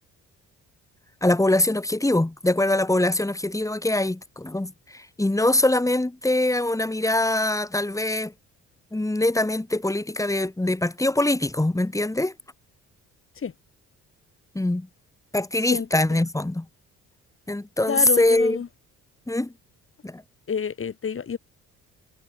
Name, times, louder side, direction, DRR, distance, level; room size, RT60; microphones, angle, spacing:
voice 1, 1.2-8.3 8.9-12.3 14.5-14.9 15.3-16.7 17.5-18.6 19.3-19.5 20.0-20.2, left 1 dB, 10° left, 3.3 m, -23 dB
voice 2, 15.7-16.3 17.9-18.7 20.5-21.4, left 7 dB, 45° left, 5.3 m, -29 dB
cardioid pair, 90°, 30 cm